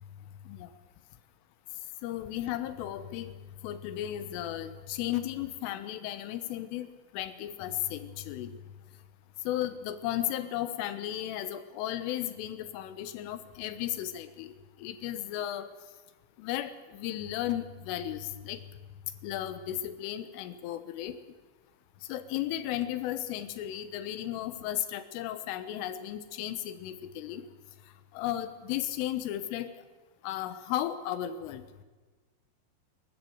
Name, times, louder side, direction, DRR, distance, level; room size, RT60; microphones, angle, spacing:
voice 1, 2.0-3.3 3.6-6.9 7.1-8.5 9.5-14.5 14.8-15.7 16.4-18.6 19.2-21.2 22.1-27.4 28.2-29.7 30.2-31.6, left 12 dB, 85° left, 12 dB, 3.7 m, -34 dB
27.5 x 13.5 x 8.0 m, 1.3 s
omnidirectional pair, 5.6 m